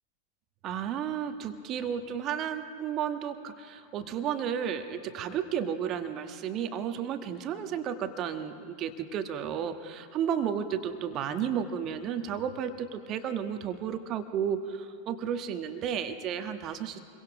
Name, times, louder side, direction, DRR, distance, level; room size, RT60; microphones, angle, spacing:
voice 1, 0.6-17.0, right 8 dB, 35° right, 7 dB, 1.5 m, -33 dB
27.5 x 23.0 x 5.0 m, 2.2 s
figure-of-eight pair, 90°, 0 cm